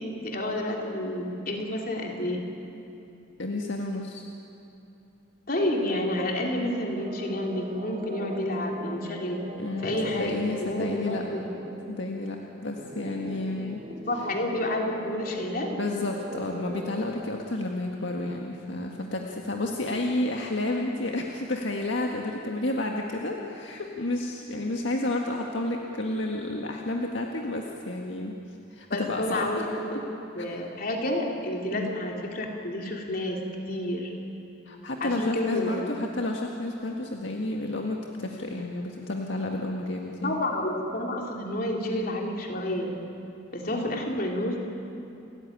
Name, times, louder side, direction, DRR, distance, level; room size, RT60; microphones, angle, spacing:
voice 1, 0.0-2.4 5.5-9.4 9.8-11.4 14.1-15.7 28.9-30.0 30.3-33.4 33.7-34.1 35.0-36.0 40.2-42.9 43.5-44.6, left 1 dB, 50° left, 0 dB, 3.4 m, -30 dB
voice 2, 3.4-4.2 9.6-11.2 11.9-12.4 12.6-13.8 15.8-28.3 28.7-29.7 29.9-30.0 31.7-31.9 34.7-40.4 43.7-44.1, left 2 dB, 75° left, 1 dB, 1.8 m, -31 dB
sound 1, 5.6-17.0, right 1 dB, 30° right, 1.6 m, -40 dB
29.0 x 14.5 x 10.0 m, 2.8 s
head